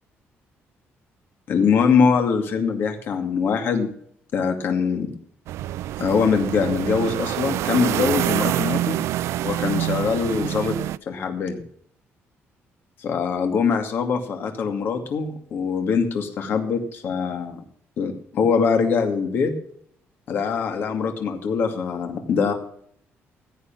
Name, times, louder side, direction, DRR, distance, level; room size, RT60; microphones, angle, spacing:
voice 1, 1.5-3.9 4.3-5.1 6.0-9.0 9.4-10.7 11.1-11.6 13.0-17.6 18.0-19.5 20.3-22.5, left 6 dB, 50° left, 5 dB, 2.4 m, -23 dB
sound 1, 5.5-11.0, right 14 dB, 80° right, 0.4 m, -26 dB
15.5 x 8.3 x 6.1 m, 0.63 s
cardioid pair, 170°, 5 cm